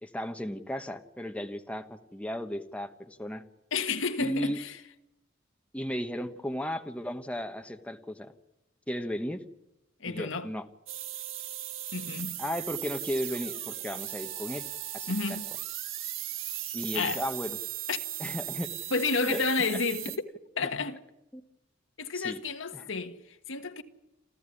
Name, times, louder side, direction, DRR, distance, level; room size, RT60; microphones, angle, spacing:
voice 1, 0.0-3.4 4.2-4.6 5.7-8.3 8.9-9.4 10.1-10.7 12.4-14.6 14.9-15.4 16.7-17.6 18.2-18.7 19.2-19.4 21.3-21.4 22.1-22.4 22.7-22.9, equal, 5° left, 1.1 m, -35 dB
voice 2, 3.7-4.8 10.0-10.5 11.9-12.4 15.1-15.5 16.9-17.2 17.9-18.0 18.9-20.2 20.6-21.0 22.0-23.8, left 4 dB, 70° left, 1.5 m, -31 dB
sound 1, 10.9-20.2, right 12 dB, 75° right, 1.4 m, -37 dB
28.0 x 14.0 x 9.9 m
head